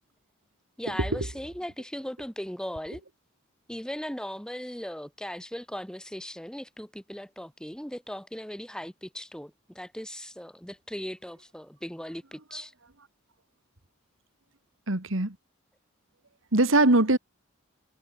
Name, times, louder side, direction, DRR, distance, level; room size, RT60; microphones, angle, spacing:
voice 1, 0.8-3.0 3.7-12.7, equal, 5° left, 1.8 m, -38 dB
voice 2, 14.9-15.4 16.5-17.2, right 2 dB, 80° right, 2.4 m, -21 dB
head